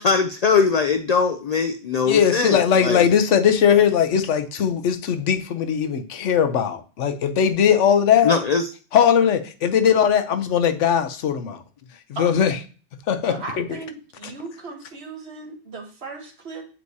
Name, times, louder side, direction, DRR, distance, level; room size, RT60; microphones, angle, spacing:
voice 1, 0.0-3.1 8.2-8.7, left 5 dB, 65° left, 0.4 m, -21 dB
voice 2, 2.1-8.4 8.9-11.6 12.2-12.5 13.1-13.6, left 8 dB, 80° left, 1.1 m, -19 dB
voice 3, 12.1-12.6 13.2-16.7, right 3 dB, 60° right, 1.5 m, -37 dB
7.4 x 4.7 x 2.7 m
omnidirectional pair, 1.2 m